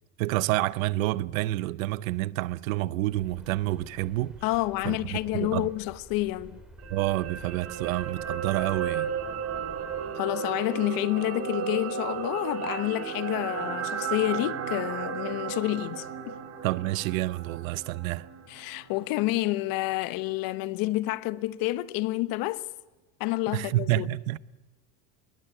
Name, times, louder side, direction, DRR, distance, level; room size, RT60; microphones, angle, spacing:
voice 1, 0.2-4.4 4.8-5.7 6.9-9.2 16.6-18.3 23.5-24.4, right 17 dB, 90° right, 0.9 m, -28 dB
sound 1, 3.1-10.1, right 1 dB, ahead, 3.8 m, -50 dB
voice 2, 4.4-6.6 10.1-16.4 18.5-22.7 23.2-24.1, left 18 dB, 60° left, 1.3 m, -29 dB
sound 2, 6.8-19.1 19.4-19.6, right 7 dB, 40° right, 3.2 m, -34 dB
27.0 x 21.5 x 9.1 m
supercardioid pair, 130°, 39 cm